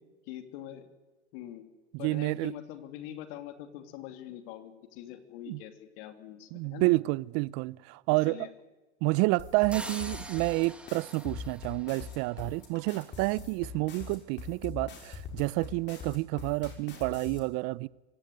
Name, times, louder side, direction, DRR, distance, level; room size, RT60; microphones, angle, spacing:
voice 1, 0.3-0.9 1.3-1.7 2.0-6.9 8.2-8.5, left 12 dB, 55° left, 3.1 m, -43 dB
voice 2, 1.9-2.5 5.5-5.6 6.5-8.5 9.0-17.9, right 23 dB, 45° right, 0.7 m, -29 dB
sound 1, 9.4-17.4, left 6 dB, 35° left, 6.2 m, -42 dB
sound 2, 9.7-12.6, right 1 dB, 5° right, 2.1 m, -44 dB
24.5 x 17.5 x 9.4 m
hypercardioid pair, 110°, 34 cm